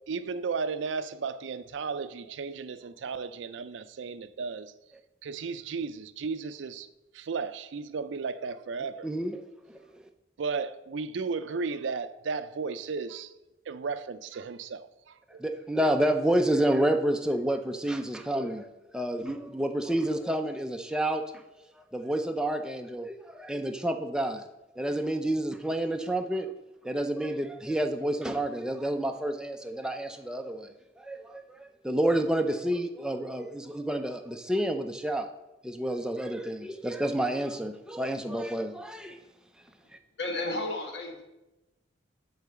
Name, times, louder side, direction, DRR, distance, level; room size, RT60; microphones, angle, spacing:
voice 1, 0.1-4.7 5.2-6.9 7.1-9.1 10.4-13.3 13.7-15.4, right 5 dB, 80° right, 0.4 m, -34 dB
voice 2, 9.0-9.4 9.7-9.8 15.4-21.4 21.8-24.5 24.8-26.5 26.8-35.3 35.6-39.2, right 1 dB, 5° right, 0.4 m, -29 dB
voice 3, 40.2-41.2, left 2 dB, 70° left, 1.5 m, -32 dB
8.2 x 4.0 x 6.7 m
head